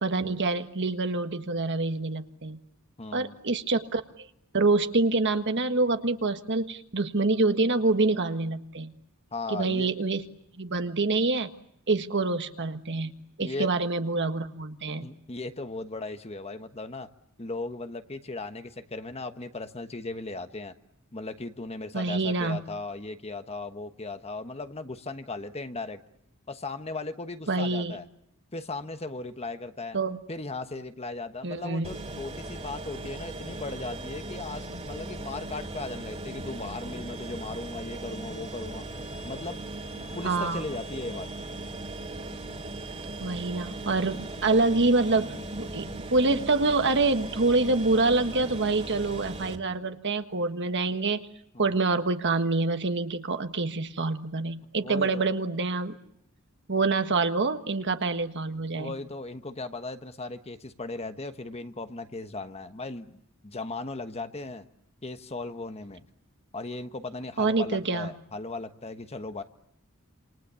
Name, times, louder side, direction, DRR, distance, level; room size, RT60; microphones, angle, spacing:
voice 1, 0.0-2.6 3.1-4.0 4.5-8.9 9.5-10.2 10.5-11.5 11.9-15.1 21.9-22.6 27.5-28.0 29.9-30.2 31.4-31.9 40.2-40.6 43.2-51.3 51.6-56.0 56.7-59.0 67.4-68.1, right 3 dB, 55° right, 8 dB, 1.6 m, -26 dB
voice 2, 3.0-3.4 9.3-9.9 13.4-13.7 15.0-17.1 17.4-20.7 21.1-26.0 26.5-28.1 28.5-30.0 30.3-38.9 39.2-39.7 40.1-41.3 51.5-51.8 54.8-55.2 58.7-64.7 65.0-66.1 66.5-69.4, left 3 dB, 30° left, 9 dB, 1.3 m, -37 dB
sound 1, 31.8-49.6, right 2 dB, 30° right, 2.6 m, -38 dB
28.0 x 27.5 x 7.0 m, 0.73 s
head